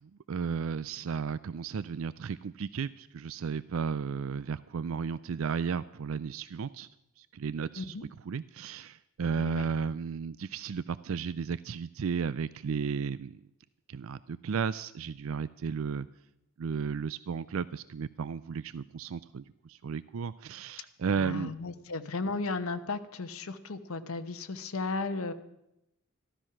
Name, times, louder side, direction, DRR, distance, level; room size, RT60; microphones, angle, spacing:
voice 1, 0.0-6.9 7.2-13.4 13.9-16.1 16.6-21.6, right 6 dB, 70° right, 17 dB, 0.4 m, -34 dB
voice 2, 21.2-25.3, left 3 dB, 80° left, 8 dB, 1.0 m, -35 dB
14.5 x 12.5 x 5.9 m, 0.83 s
head